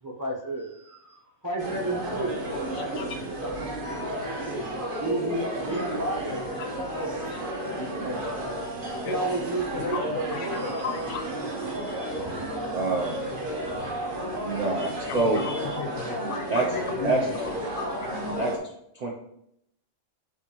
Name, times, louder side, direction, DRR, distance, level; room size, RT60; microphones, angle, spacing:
voice 1, 0.0-6.4 6.9-7.3 7.7-10.8 11.7-12.4 12.9-13.8 14.7-15.8, right 2 dB, 20° right, -3 dB, 0.6 m, -34 dB
sound 1, 1.6-18.6, right 1 dB, 50° right, 0.9 m, -32 dB
voice 2, 2.7-3.2 6.6-6.7 7.2-7.4 9.0-9.2 9.7-11.3 15.1-18.5, left 6 dB, 75° left, 5 dB, 0.9 m, -36 dB
voice 3, 12.7-13.2 14.4-15.5 16.5-16.7 17.0-17.2 18.4-18.5 18.9-19.1, right 3 dB, 85° right, 0 dB, 0.3 m, -26 dB
5.8 x 2.6 x 2.8 m, 0.75 s
omnidirectional pair, 1.3 m